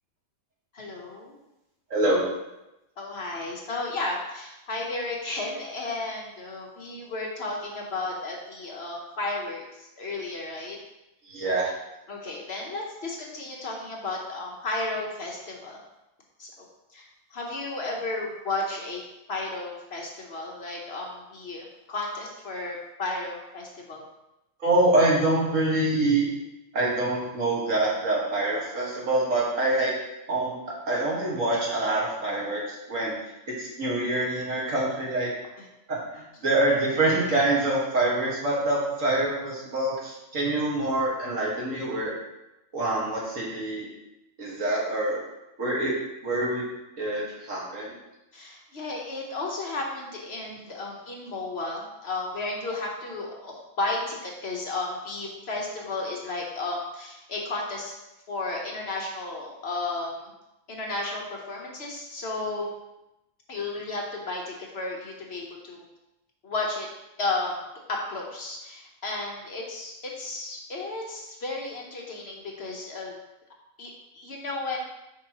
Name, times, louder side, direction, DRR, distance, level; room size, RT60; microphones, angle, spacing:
voice 1, 0.7-1.4 3.0-10.8 12.1-15.8 16.4-16.6 16.9-19.0 19.3-24.0 48.3-57.9 58.3-60.3 60.7-62.7 63.5-65.8 66.4-66.9 67.2-67.6 68.1-73.2 73.8-74.8, left 2 dB, 55° left, -1 dB, 1.3 m, -33 dB
voice 2, 1.9-2.2 11.3-11.7 24.6-26.3 26.7-29.9 30.3-33.1 33.5-35.3 35.9-42.1 42.7-43.9 44.4-45.2 45.6-46.0 46.2-46.6 47.0-47.9, right 2 dB, 70° right, -5 dB, 2.1 m, -25 dB
6.7 x 5.5 x 3.0 m, 0.93 s
omnidirectional pair, 1.4 m